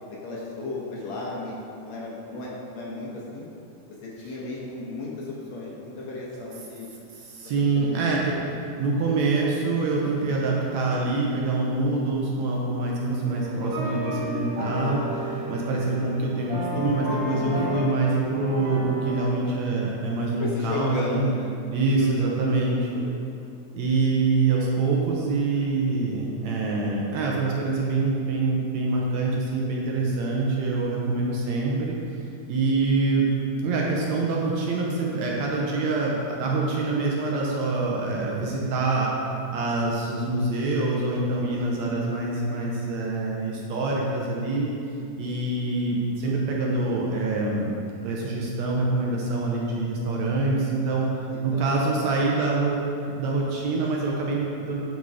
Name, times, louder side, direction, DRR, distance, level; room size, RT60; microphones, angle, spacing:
voice 1, 0.2-3.5 4.0-6.9 7.6-8.2 20.4-21.5 22.0-23.1 24.6-24.7 51.3-51.8, left 2 dB, 65° left, -5 dB, 2.2 m, -35 dB
voice 2, 7.1-8.4 8.8-21.3 21.7-22.8 23.7-32.0 32.5-33.3 33.6-39.1 39.5-44.7 45.2-47.7 48.0-51.1 51.4-52.9 53.2-54.8, right 3 dB, 70° right, -3 dB, 2.0 m, -25 dB
sound 1, 13.2-19.2, left 1 dB, 50° right, 1.5 m, -32 dB
9.6 x 4.6 x 4.8 m, 2.6 s
omnidirectional pair, 3.6 m